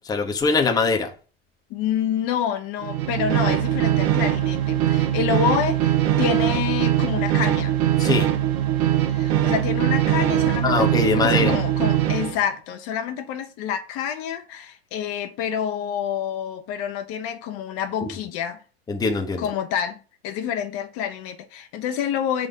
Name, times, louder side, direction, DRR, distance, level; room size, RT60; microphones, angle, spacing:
voice 1, 0.0-1.1 8.0-8.3 10.6-11.6 18.0-18.1 18.9-19.5, left 4 dB, 10° left, 1.0 m, -22 dB
voice 2, 1.7-7.8 9.1-18.6 19.4-20.0 20.2-22.5, left 9 dB, 45° left, 1.0 m, -28 dB
sound 1, 2.8-12.4, right 12 dB, 55° right, 1.2 m, -21 dB
7.0 x 4.0 x 5.4 m
supercardioid pair, 140°, 31 cm